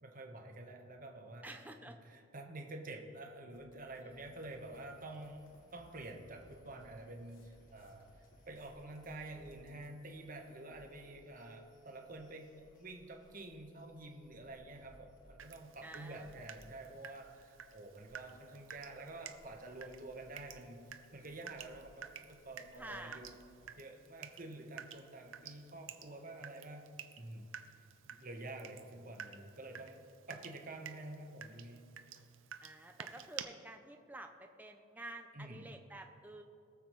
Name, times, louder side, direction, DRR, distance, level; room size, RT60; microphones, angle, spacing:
voice 1, 0.0-1.5 2.1-5.5 5.7-8.1 8.5-20.9 21.1-23.3 23.8-26.8 27.2-27.5 28.0-30.0 30.3-31.9 35.3-35.7, right 2 dB, 40° right, 2 dB, 1.2 m, -49 dB
voice 2, 1.4-2.0 15.8-16.5 22.8-23.2 32.6-36.4, right 2 dB, 10° right, 4 dB, 0.5 m, -50 dB
sound 1, 3.5-9.9, equal, 65° left, 1.1 m, -66 dB
sound 2, 4.1-23.7, equal, 40° left, 1.4 m, -66 dB
Water tap faucet / Drip, 15.4-33.4, right 8 dB, 65° right, 0.6 m, -52 dB
21.5 x 7.3 x 3.1 m, 2.6 s
head